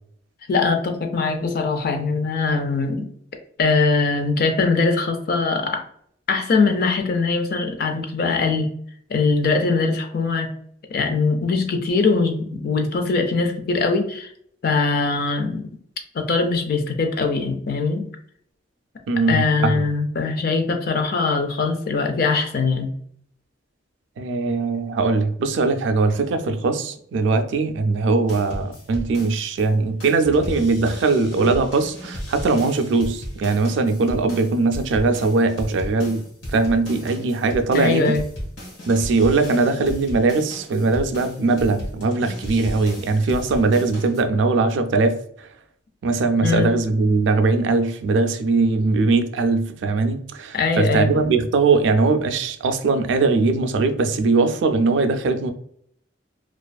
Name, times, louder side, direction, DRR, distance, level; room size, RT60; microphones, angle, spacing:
voice 1, 0.5-3.1 3.6-5.8 6.3-8.7 9.1-10.5 10.9-14.3 14.6-15.6 16.1-18.0 19.3-22.9 37.7-38.2 46.4-46.7 50.5-51.3, left 4 dB, 55° left, 0.4 m, -21 dB
voice 2, 19.1-19.8 24.2-36.2 36.5-38.2 38.8-45.5 46.0-55.5, right 3 dB, 75° right, 0.3 m, -20 dB
sound 1, 28.3-29.7 30.0-44.2, equal, 85° left, 1.1 m, -35 dB
2.4 x 2.3 x 2.2 m
head